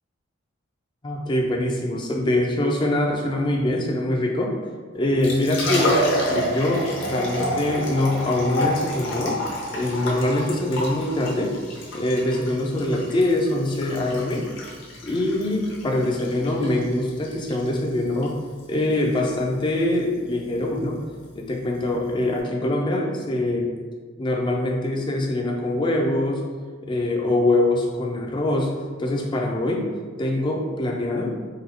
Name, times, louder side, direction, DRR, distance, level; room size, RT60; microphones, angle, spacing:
voice 1, 1.0-4.5 4.9-6.0 6.3-9.4 9.7-11.5 11.9-14.4 15.0-18.4 18.7-21.0 21.3-23.7 24.2-26.4 26.8-28.7 29.0-29.9 30.2-31.3, left 1 dB, 25° left, 0 dB, 0.3 m, -23 dB
Liquid, 5.0-22.4, equal, 65° left, 0.7 m, -30 dB
4.0 x 2.3 x 2.7 m, 1.5 s
head